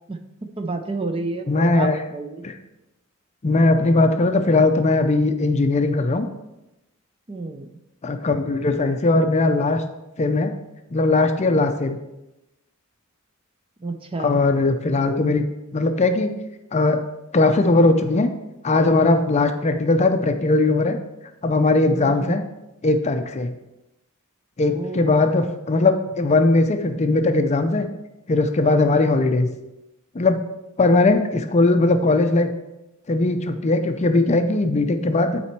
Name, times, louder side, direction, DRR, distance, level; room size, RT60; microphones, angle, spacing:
voice 1, 0.6-2.4 7.3-7.8 13.8-14.4 21.9-22.4 24.7-25.3, right 3 dB, 25° right, 6 dB, 0.6 m, -30 dB
voice 2, 1.5-2.0 2.4-2.5 3.4-6.3 8.0-9.8 10.2-10.5 10.9-12.0 14.2-15.4 15.7-16.3 16.7-17.0 17.3-18.3 18.6-21.0 21.4-22.4 22.8-23.5 24.6-27.9 28.3-29.5 30.1-30.4 30.8-32.5 33.1-35.4, left 2 dB, 30° left, 7 dB, 0.5 m, -19 dB
8.7 x 4.3 x 4.5 m, 0.96 s
head